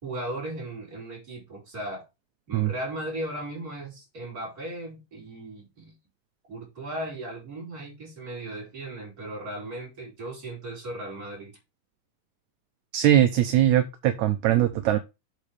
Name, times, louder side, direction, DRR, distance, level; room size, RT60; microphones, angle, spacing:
voice 1, 0.0-2.0 2.5-5.9 6.5-11.5, right 1 dB, 25° right, -3 dB, 5.2 m, -36 dB
voice 2, 12.9-15.0, right 12 dB, 75° right, 7 dB, 2.0 m, -21 dB
8.2 x 6.4 x 3.4 m, 0.25 s
omnidirectional pair, 3.7 m